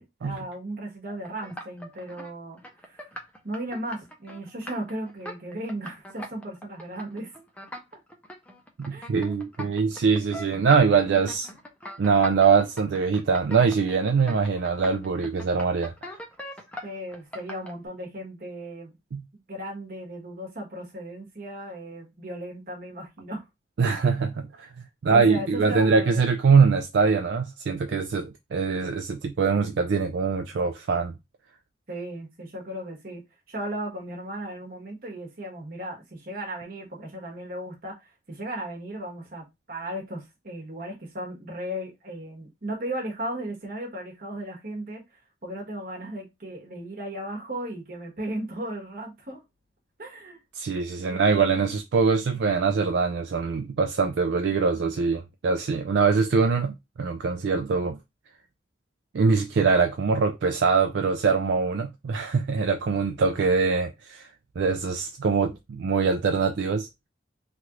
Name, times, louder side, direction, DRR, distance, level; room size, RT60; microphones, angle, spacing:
voice 1, 0.0-3.1 3.4-7.3 8.9-9.0 16.8-18.9 19.5-23.4 23.8-23.9 25.1-26.2 31.9-45.0 45.4-49.4 50.0-50.4 51.1-51.3, right 1 dB, 50° right, 1.1 m, -36 dB
sound 1, 1.1-2.3 2.6-17.7, equal, 5° left, 0.5 m, -41 dB
voice 2, 8.8-11.5 12.0-16.2 19.1-19.2 23.8-24.3 24.6-24.7 25.0-31.2 50.5-58.0 59.1-64.3 64.6-66.9, right 5 dB, 70° right, 0.4 m, -23 dB
3.2 x 2.4 x 2.8 m
head